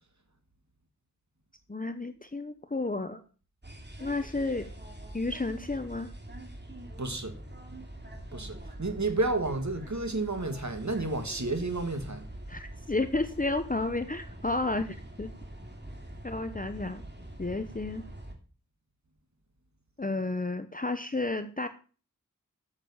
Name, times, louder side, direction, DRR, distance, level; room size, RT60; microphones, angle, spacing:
voice 1, 1.7-3.2 4.0-4.7 5.1-6.1 12.5-15.3 16.2-17.0 17.4-18.0 20.0-21.7, left 2 dB, 25° left, 10 dB, 0.8 m, -32 dB
sound 1, 3.6-18.4, right 1 dB, 35° right, 2.5 m, -44 dB
voice 2, 7.0-7.4 8.3-12.2, right 2 dB, 60° right, 7 dB, 2.0 m, -31 dB
9.1 x 7.3 x 7.1 m, 0.39 s
wide cardioid pair, 45°, 32 cm